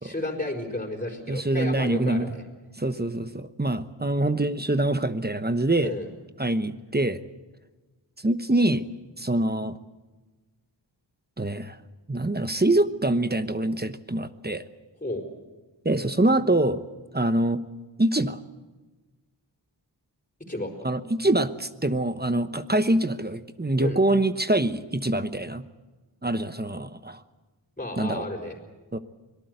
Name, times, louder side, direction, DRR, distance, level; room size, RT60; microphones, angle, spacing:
voice 1, 0.0-2.4 5.8-6.1 15.0-15.3 20.5-20.7 23.8-24.0 27.8-28.5, left 1 dB, 20° left, 3 dB, 4.9 m, -32 dB
voice 2, 1.3-2.4 2.8-5.9 6.4-7.2 8.2-8.8 9.2-9.8 11.4-11.8 12.1-14.6 15.8-16.8 17.1-17.6 18.0-18.4 20.8-25.6 26.2-27.2 28.0-28.3 28.9-29.0, right 1 dB, 25° right, 11 dB, 1.0 m, -25 dB
24.5 x 18.5 x 8.0 m, 1.2 s
wide cardioid pair, 55°, 43 cm